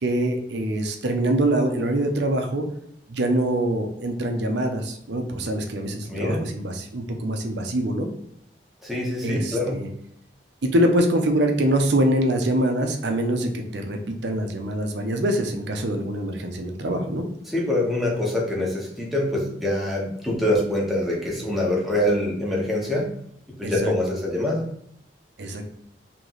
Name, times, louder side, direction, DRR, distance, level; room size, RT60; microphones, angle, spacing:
voice 1, 0.0-2.6 3.1-8.1 9.2-9.9 10.6-17.2 23.6-23.9 25.4-25.7, right 1 dB, 70° right, 4 dB, 0.6 m, -24 dB
voice 2, 6.1-6.4 8.8-9.8 17.5-23.1 23.6-24.6, left 1 dB, ahead, -4 dB, 1.0 m, -25 dB
3.1 x 2.9 x 3.9 m, 0.73 s
head